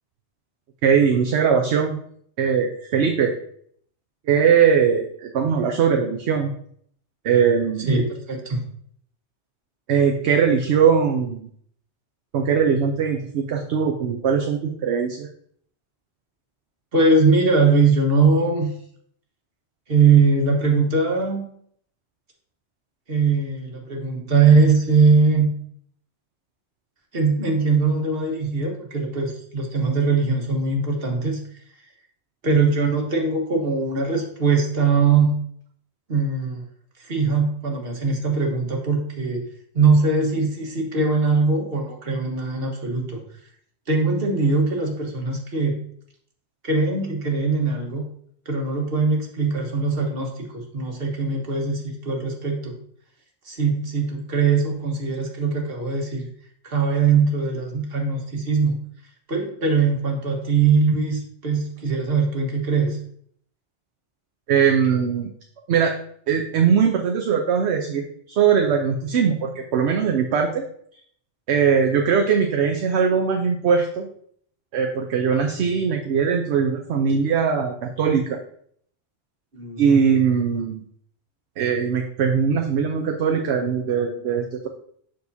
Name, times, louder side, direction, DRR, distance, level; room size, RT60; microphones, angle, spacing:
voice 1, 0.8-2.0 2.4-3.3 4.3-6.5 7.2-7.9 9.9-11.5 12.3-15.3 64.5-65.3 65.7-65.9 66.3-70.6 71.5-74.1 74.7-78.4 79.8-80.8 81.6-84.7, right 6 dB, 70° right, 3 dB, 0.9 m, -20 dB
voice 2, 7.9-8.6 16.9-18.7 19.9-21.5 23.1-25.5 27.1-31.4 32.4-35.4 36.1-36.6 37.0-39.5 39.7-43.2 43.9-45.8 46.6-48.0 48.4-52.8 53.4-56.3 56.6-58.8 59.3-63.0 79.5-80.2, right 4 dB, 55° right, 1 dB, 1.6 m, -21 dB
7.0 x 6.4 x 2.7 m, 0.63 s
omnidirectional pair, 1.2 m